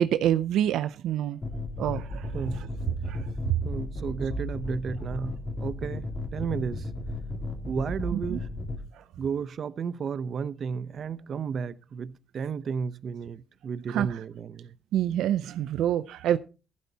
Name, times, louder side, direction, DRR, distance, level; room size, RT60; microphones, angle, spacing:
voice 1, 0.0-1.4 1.8-2.3 3.1-3.2 8.1-8.4 8.9-9.0 13.9-14.2 14.9-16.4, right 11 dB, 85° right, 0.5 m, -26 dB
sound 1, 1.4-8.8, left 2 dB, 35° left, 3.0 m, -34 dB
voice 2, 3.6-6.9 7.7-8.5 9.2-14.8, right 6 dB, 55° right, 0.7 m, -33 dB
15.5 x 12.0 x 2.8 m
cardioid pair, 90°, 0 cm